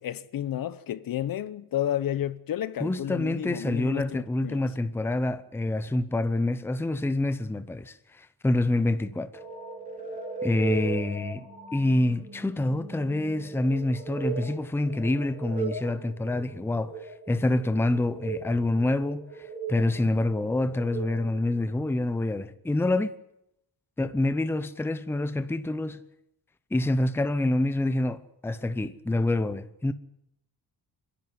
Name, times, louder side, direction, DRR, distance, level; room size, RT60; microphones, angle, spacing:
voice 1, 0.0-4.6, left 11 dB, 55° left, 0.9 m, -31 dB
voice 2, 2.8-9.3 10.4-11.5 11.7-17.0 17.3-23.2 24.0-26.0 26.7-29.9, left 2 dB, 5° left, 0.7 m, -27 dB
sound 1, 9.3-21.5, right 4 dB, 20° right, 4.7 m, -38 dB
28.5 x 11.0 x 9.4 m
cardioid pair, 160°, 40 cm